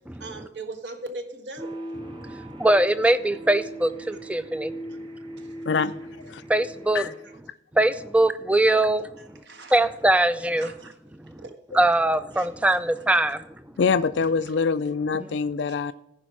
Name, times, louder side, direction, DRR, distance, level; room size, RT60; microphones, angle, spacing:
voice 1, 0.2-1.7 9.2-9.8 10.6-10.9 11.4-11.5 12.3-12.5, right 2 dB, 65° right, 1.3 m, -38 dB
sound 1, 1.6-7.4, right 1 dB, 25° right, 0.9 m, -39 dB
voice 2, 2.1-4.7 6.5-7.1 7.7-9.1 9.7-10.7 11.3-11.4 11.7-13.4, right 1 dB, 5° right, 0.4 m, -22 dB
voice 3, 13.8-15.9, left 5 dB, 65° left, 0.4 m, -24 dB
15.0 x 5.1 x 4.8 m
head